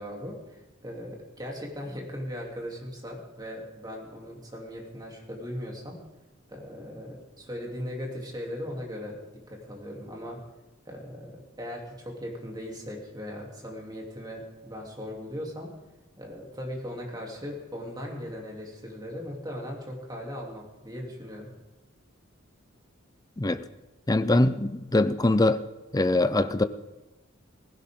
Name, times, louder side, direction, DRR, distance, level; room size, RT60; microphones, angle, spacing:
voice 1, 0.0-6.0 6.5-10.4 10.8-15.7 16.2-21.5, equal, 20° right, -1 dB, 3.1 m, -38 dB
voice 2, 23.4-23.7 24.1-25.6 25.9-26.6, left 2 dB, 20° left, 12 dB, 0.6 m, -23 dB
18.5 x 16.0 x 3.8 m, 1.1 s
head